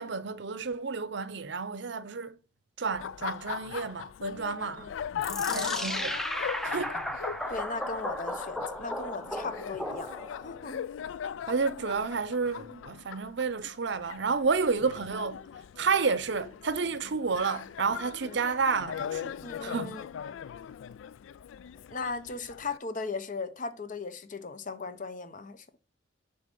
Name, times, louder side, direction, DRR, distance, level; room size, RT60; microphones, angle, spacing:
voice 1, 0.0-2.3 2.8-4.9 5.5-6.2 6.6-7.0 11.5-15.4 15.8-19.4 19.6-20.0, right 5 dB, 65° right, 0.6 m, -30 dB
Laughter, 2.9-22.8, left 8 dB, 75° left, 0.3 m, -39 dB
voice 2, 4.6-4.9 5.5-5.9 7.5-10.9 18.2-18.4 19.4-20.1 21.9-25.6, left 4 dB, 45° left, 0.7 m, -38 dB
sound 1, 5.2-10.5, equal, ahead, 0.5 m, -35 dB
6.6 x 4.1 x 5.3 m
head